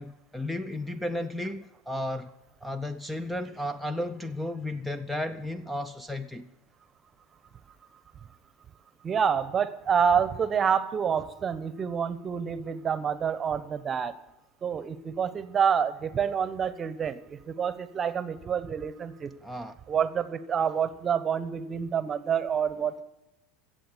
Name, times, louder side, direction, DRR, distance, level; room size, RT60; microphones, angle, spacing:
voice 1, 0.0-2.3 2.6-6.5 19.4-19.8, left 1 dB, 5° left, 0.7 m, -33 dB
voice 2, 9.0-14.1 14.6-19.3 19.9-23.0, right 7 dB, 30° right, 1.1 m, -28 dB
15.5 x 7.7 x 8.1 m
hypercardioid pair, 95°, 0 cm